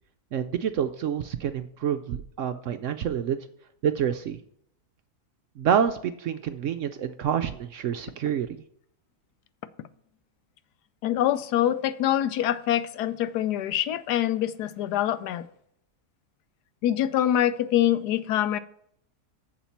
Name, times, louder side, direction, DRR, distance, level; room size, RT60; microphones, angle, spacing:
voice 1, 0.3-3.4 3.8-4.4 5.6-8.6, right 8 dB, 70° right, 0.7 m, -27 dB
voice 2, 11.0-15.4 16.8-18.6, left 11 dB, 85° left, 1.2 m, -25 dB
7.4 x 7.1 x 5.7 m
omnidirectional pair, 1.7 m